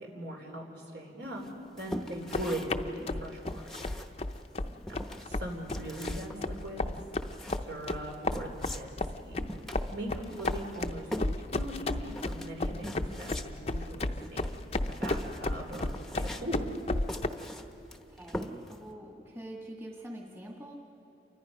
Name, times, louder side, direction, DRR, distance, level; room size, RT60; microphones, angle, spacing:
voice 1, 0.1-1.5 1.7-3.7 5.2-6.9 7.5-9.5 9.9-11.1 11.5-14.4 14.8-16.7, right 1 dB, 70° right, 0 dB, 4.0 m, -40 dB
sound 1, 1.4-18.9, equal, ahead, 0.8 m, -43 dB
sound 2, 2.2-17.3, left 2 dB, 35° left, 0.6 m, -33 dB
voice 2, 18.1-20.8, right 1 dB, 15° right, -1 dB, 1.7 m, -45 dB
29.0 x 24.0 x 5.4 m, 2.9 s
head